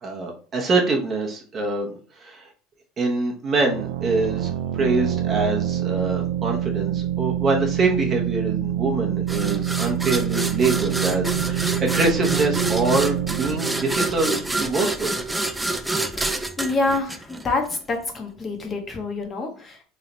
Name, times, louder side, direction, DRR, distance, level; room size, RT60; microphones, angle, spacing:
voice 1, 0.0-1.9 2.2-2.5 3.0-15.1, right 3 dB, 30° right, 1 dB, 1.0 m, -24 dB
sound 1, 3.6-15.1, right 11 dB, 85° right, 0.3 m, -26 dB
sound 2, 9.3-17.8, right 2 dB, 5° right, 0.4 m, -28 dB
voice 2, 16.6-17.6 17.9-19.8, left 3 dB, 25° left, 2 dB, 1.0 m, -26 dB
3.3 x 2.8 x 3.9 m, 0.39 s
supercardioid pair, 130°, 0 cm